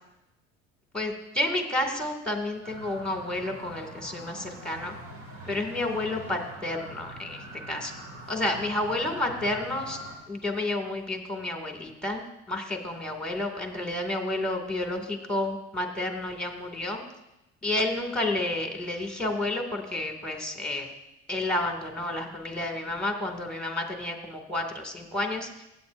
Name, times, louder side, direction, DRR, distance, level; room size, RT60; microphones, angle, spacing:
voice 1, 0.9-5.0 5.4-7.4 7.7-7.9 8.3-10.0 10.3-17.0 17.6-20.9 21.3-25.6, left 1 dB, 5° left, 2 dB, 2.3 m, -30 dB
sound 1, 2.6-10.1, right 1 dB, 80° right, 2.7 m, -43 dB
16.0 x 9.3 x 2.6 m, 0.91 s
supercardioid pair, 75°, 33 cm